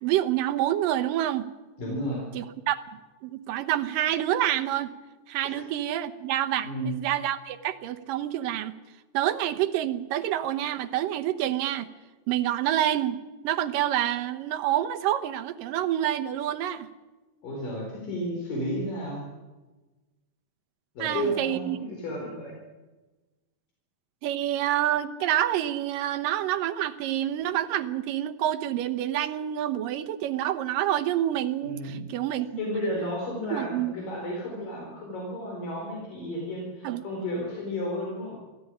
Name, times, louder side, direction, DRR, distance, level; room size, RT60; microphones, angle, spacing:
voice 1, 0.0-1.5 2.3-2.8 3.2-4.9 5.3-8.8 9.1-11.9 12.3-13.2 13.4-16.9 21.0-21.8 24.2-32.5 33.5-33.9 36.8-37.0, right 12 dB, 85° right, 11 dB, 2.7 m, -27 dB
voice 2, 1.8-2.2 5.4-5.6 6.6-6.9 17.4-19.3 21.0-22.6 31.6-32.0 32.5-38.3, equal, 75° left, -1 dB, 6.1 m, -32 dB
24.5 x 15.5 x 10.0 m, 1.2 s
omnidirectional pair, 3.8 m